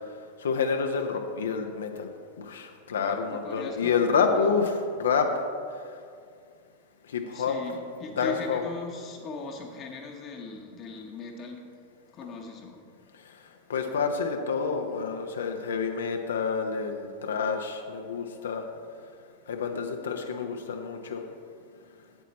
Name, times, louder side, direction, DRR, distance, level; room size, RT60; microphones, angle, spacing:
voice 1, 0.4-2.1 2.4-5.4 7.1-7.6 8.2-8.6 13.7-18.6 19.5-21.2, left 5 dB, 65° left, 5 dB, 0.6 m, -28 dB
voice 2, 3.0-4.5 7.3-11.6 12.1-12.9, left 3 dB, 30° left, 1 dB, 0.9 m, -39 dB
8.2 x 8.2 x 4.2 m, 2.3 s
figure-of-eight pair, 90°, 0 cm